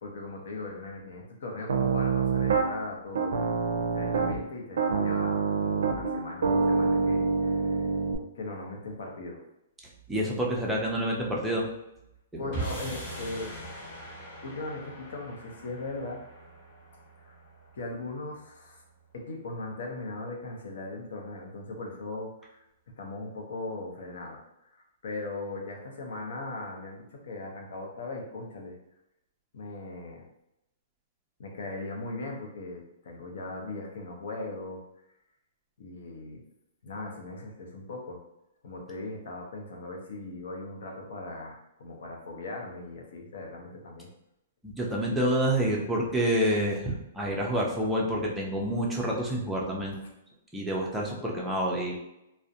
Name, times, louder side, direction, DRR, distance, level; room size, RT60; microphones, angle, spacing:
voice 1, 0.0-3.4 3.7-7.9 8.3-9.4 12.4-13.5 14.4-16.2 17.2-17.3 17.7-18.8 19.1-22.6 23.0-28.8 29.5-30.2 31.4-34.8 35.8-36.4 36.8-38.2 38.6-44.1 49.9-50.1, left 2 dB, 65° left, 1 dB, 0.6 m, -39 dB
Piano, 1.7-2.7 3.1-4.4 4.8-8.2, right 5 dB, 75° right, 0.4 m, -26 dB
voice 2, 10.1-11.7 12.3-12.4 44.6-49.9 50.5-51.9, right 1 dB, 5° right, -4 dB, 0.4 m, -28 dB
sound 1, 12.5-18.9, right 1 dB, 25° left, 0.9 m, -41 dB
2.5 x 2.0 x 2.7 m, 0.85 s
hypercardioid pair, 170°, 0 cm